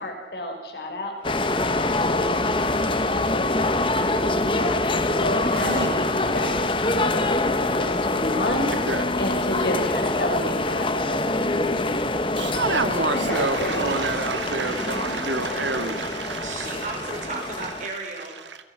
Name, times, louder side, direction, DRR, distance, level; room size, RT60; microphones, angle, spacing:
voice 1, 0.0-2.3 3.3-3.5 3.9-8.7 9.2-12.0 13.1-13.9, left 1 dB, 65° left, 3 dB, 5.5 m, -31 dB
sound 1, 1.2-17.9, left 2 dB, 30° left, 1.3 m, -25 dB
voice 2, 5.5-5.9 8.9-9.0 12.4-16.8, right 3 dB, 90° right, 8 dB, 2.0 m, -28 dB
voice 3, 16.1-18.4, right 3 dB, 45° right, 2 dB, 5.3 m, -35 dB
28.5 x 18.0 x 6.0 m, 1.2 s
head